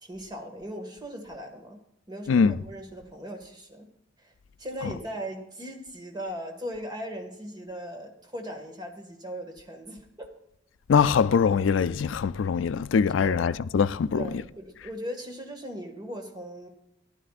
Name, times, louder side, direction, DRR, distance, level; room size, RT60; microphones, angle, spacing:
voice 1, 0.0-1.8 2.1-3.9 4.2-4.3 4.6-10.3 13.2-13.6 14.1-16.7, equal, 20° right, 1.7 m, -38 dB
voice 2, 10.9-14.3, left 6 dB, 75° left, 0.4 m, -23 dB
15.0 x 11.5 x 2.5 m
head